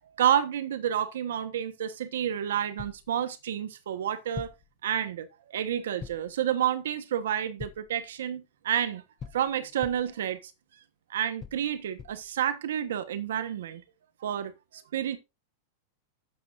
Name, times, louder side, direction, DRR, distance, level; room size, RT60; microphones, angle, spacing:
voice 1, 0.2-4.5 4.8-9.0 9.3-10.4 11.1-13.8 14.2-15.2, right 10 dB, 90° right, 1.2 m, -29 dB
sound 1, 2.8-3.1 4.3-4.7 6.0-6.4 7.6-8.0 9.2-10.2 11.4-12.3, left 7 dB, 20° left, 0.5 m, -43 dB
12.0 x 8.3 x 2.6 m
supercardioid pair, 155°, 0 cm